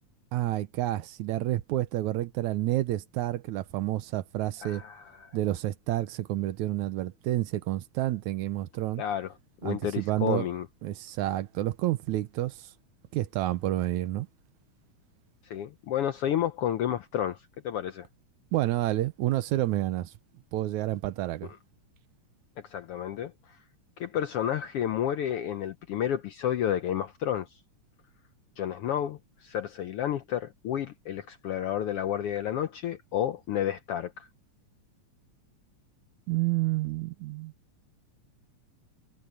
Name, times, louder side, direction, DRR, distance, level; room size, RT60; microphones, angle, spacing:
voice 1, 0.3-4.8 5.3-9.0 9.6-10.5 10.8-12.7 13.1-14.3 18.5-20.1 20.5-21.5 36.3-37.5, right 15 dB, 85° right, 2.2 m, -29 dB
voice 2, 4.6-5.4 9.0-9.3 9.6-10.7 15.4-18.1 22.6-23.6 24.0-27.6 28.6-34.3, left 10 dB, 75° left, 1.3 m, -31 dB
omnidirectional pair, 3.4 m